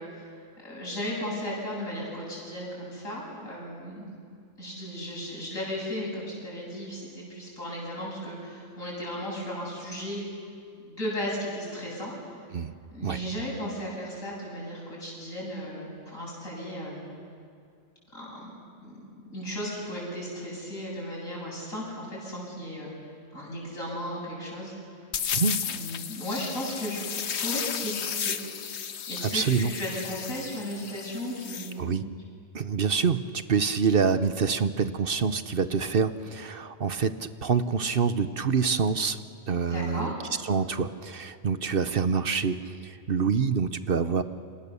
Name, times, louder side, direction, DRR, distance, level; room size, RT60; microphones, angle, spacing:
voice 1, 0.6-4.1 4.6-10.2 10.8-12.4 12.9-17.1 18.1-18.5 18.8-19.0 19.3-22.9 23.3-24.7 25.6-27.0 27.3-32.0 39.7-40.2, equal, 90° left, -4 dB, 8.5 m, -35 dB
sound 1, 25.1-31.7, left 7 dB, 60° left, 1.1 m, -33 dB
voice 2, 25.3-25.6 29.3-29.7 31.8-32.0 32.5-39.2 39.5-40.1 40.4-44.2, right 5 dB, 50° right, 11 dB, 1.0 m, -26 dB
29.5 x 27.5 x 7.0 m, 2.3 s
omnidirectional pair, 1.4 m